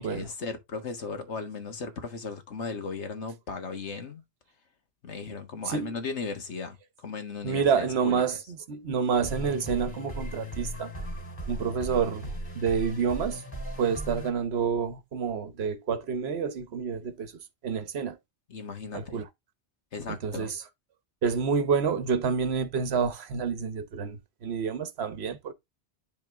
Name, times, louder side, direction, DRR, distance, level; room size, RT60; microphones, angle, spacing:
voice 1, 0.0-4.2 5.0-8.2 18.5-19.2 19.9-20.5, left 4 dB, 75° left, 1.7 m, -36 dB
voice 2, 7.4-8.4 8.7-10.9 11.5-13.4 13.8-17.3 17.6-18.2 18.9-19.2 20.1-20.6 21.2-25.5, right 6 dB, 65° right, 1.2 m, -28 dB
sound 1, 9.2-14.3, equal, 15° left, 3.3 m, -37 dB
10.5 x 3.7 x 3.5 m
omnidirectional pair, 1.2 m